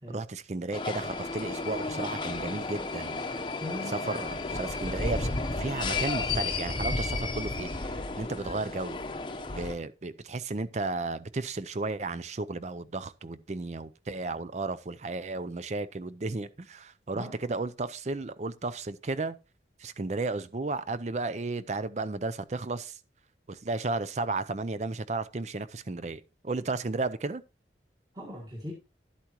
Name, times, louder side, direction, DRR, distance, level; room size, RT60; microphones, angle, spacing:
voice 1, 0.1-3.2 3.9-5.3 5.6-9.0 9.5-19.4 19.8-23.0 23.5-27.4, right 3 dB, 40° right, 0.5 m, -34 dB
sound 1, 0.7-9.7, left 3 dB, 25° left, 0.8 m, -33 dB
voice 2, 3.6-4.1 17.1-17.5 28.1-28.7, left 1 dB, 20° right, 1.6 m, -40 dB
11.5 x 8.4 x 3.0 m
head